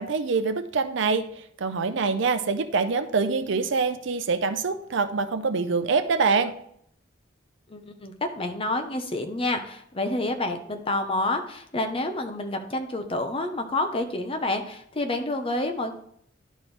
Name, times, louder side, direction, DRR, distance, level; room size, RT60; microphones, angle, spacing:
voice 1, 0.0-6.5, right 4 dB, 65° right, 9 dB, 0.6 m, -25 dB
voice 2, 7.7-15.9, left 2 dB, 30° left, 6 dB, 0.8 m, -28 dB
11.0 x 4.4 x 3.3 m, 0.68 s
head